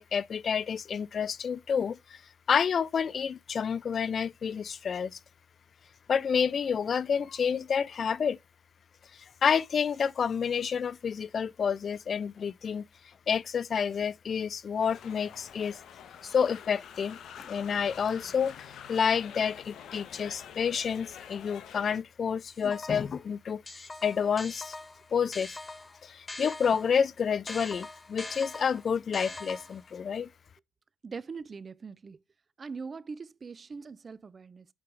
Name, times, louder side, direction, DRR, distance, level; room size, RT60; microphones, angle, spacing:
voice 1, 0.0-2.0 2.5-5.2 6.1-8.4 9.4-12.8 13.3-15.8 16.2-18.5 18.9-24.7 25.1-25.6 26.0-30.3, left 7 dB, 50° left, 0.3 m, -29 dB
sound 1, 14.8-22.0, left 8 dB, 70° left, 1.0 m, -47 dB
sound 2, 22.5-23.2 23.7-27.0 27.5-29.9, left 2 dB, 25° left, 0.7 m, -43 dB
voice 2, 31.0-32.2 32.6-34.7, right 5 dB, 35° right, 0.4 m, -41 dB
8.7 x 4.5 x 3.3 m
cardioid pair, 90°, 0 cm